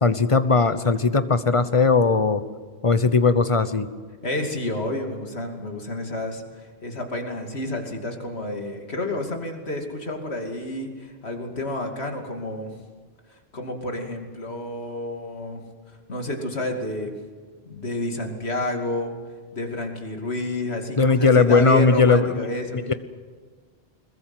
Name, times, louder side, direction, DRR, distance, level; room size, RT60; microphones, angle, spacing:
voice 1, 0.0-2.4 2.8-3.9 21.0-22.5 22.9-23.0, left 4 dB, 30° left, 11 dB, 1.0 m, -18 dB
voice 2, 4.2-12.8 13.3-15.6 16.1-17.2 17.7-19.2 19.5-22.9, left 1 dB, 90° left, 3 dB, 2.9 m, -30 dB
21.5 x 21.5 x 7.8 m, 1.5 s
omnidirectional pair, 1.1 m